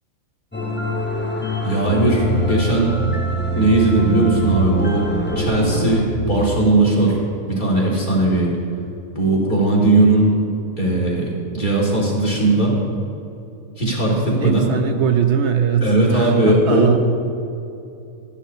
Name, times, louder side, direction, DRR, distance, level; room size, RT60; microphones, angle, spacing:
sound 1, 0.5-6.0, right 2 dB, 10° left, 0.6 m, -23 dB
voice 1, 1.6-2.9 3.6-5.1 5.4-7.2 7.5-8.5 9.1-10.3 10.8-12.8 13.8-14.7 15.8-17.0, right 2 dB, 35° left, -4 dB, 2.1 m, -18 dB
voice 2, 14.4-17.0, right 8 dB, 65° right, 6 dB, 0.8 m, -21 dB
13.0 x 9.8 x 2.7 m, 2.7 s
omnidirectional pair, 1.4 m